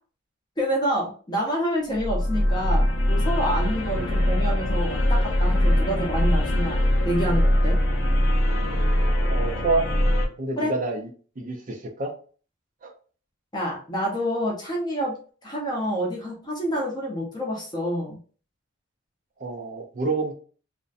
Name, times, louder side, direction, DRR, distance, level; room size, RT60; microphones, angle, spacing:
voice 1, 0.6-7.8 10.6-10.7 13.5-15.2 15.4-18.2, equal, 20° left, -2 dB, 0.6 m, -28 dB
sound 1, 1.9-10.3, left 1 dB, 55° left, 0.6 m, -22 dB
voice 2, 9.3-9.9 10.4-11.1 11.4-12.1 12.8-12.9 19.4-20.3, right 3 dB, 35° right, 4 dB, 0.4 m, -28 dB
2.5 x 2.1 x 2.4 m, 0.40 s
head